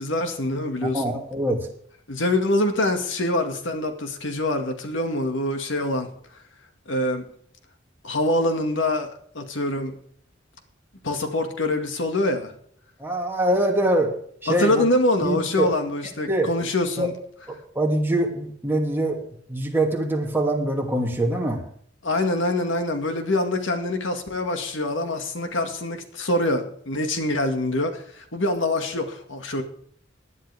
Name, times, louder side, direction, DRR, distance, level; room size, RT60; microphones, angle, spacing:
voice 1, 0.0-1.1 2.1-6.1 6.9-7.3 8.0-10.0 11.0-12.5 14.5-17.1 22.0-29.6, left 1 dB, 80° left, 5 dB, 2.1 m, -25 dB
voice 2, 0.9-1.6 13.0-14.1 14.4-14.8 15.2-15.7 16.3-16.5 17.0-17.1 17.7-19.2 19.5-21.6, right 1 dB, 10° right, 0 dB, 2.6 m, -23 dB
18.0 x 11.0 x 3.5 m, 0.62 s
head